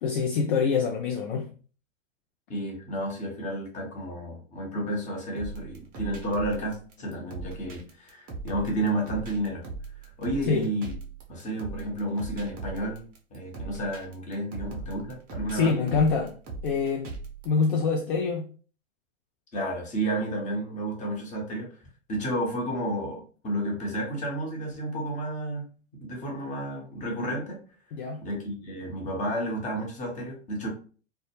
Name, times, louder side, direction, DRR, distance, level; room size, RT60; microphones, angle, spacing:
voice 1, 0.0-1.5 10.5-10.7 15.5-16.4 16.6-17.1 17.4-18.5 27.9-28.2, left 5 dB, 50° left, 0.4 m, -25 dB
voice 2, 2.5-9.7 10.0-11.0 11.3-13.1 13.3-15.9 19.5-21.8 22.1-25.6 26.0-27.6 28.2-30.7, right 1 dB, 20° left, 0.9 m, -31 dB
sound 1, 5.4-17.6, right 4 dB, 25° right, 0.6 m, -39 dB
2.2 x 2.0 x 3.0 m
hypercardioid pair, 110°, 36 cm